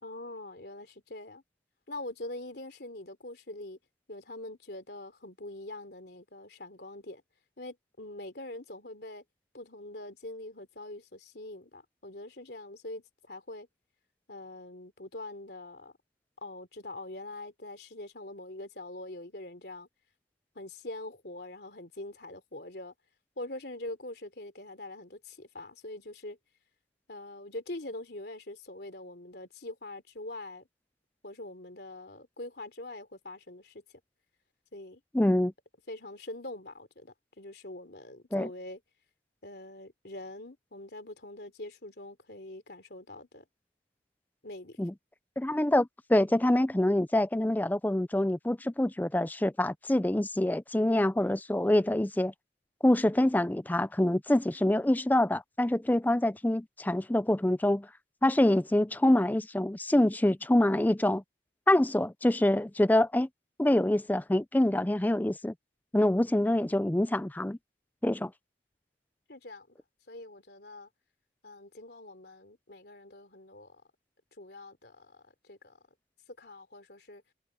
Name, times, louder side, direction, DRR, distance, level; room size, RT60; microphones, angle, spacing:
voice 1, 0.0-1.4 1.9-3.8 4.1-7.2 7.6-9.2 9.5-13.7 14.3-15.9 16.4-19.9 20.6-22.9 23.4-26.4 27.1-30.7 31.2-33.8 34.7-35.0 35.9-38.8 39.4-43.5 44.4-44.9 69.3-69.8 70.1-70.9 71.4-73.8 74.4-75.8 76.4-77.2, left 2 dB, 60° left, 3.4 m, -43 dB
voice 2, 35.1-35.5 38.3-38.5 44.8-44.9 45.4-52.3 52.8-57.9 58.2-61.2 61.7-63.3 63.6-65.5 65.9-67.6 68.0-68.3, left 1 dB, 10° left, 0.4 m, -25 dB
head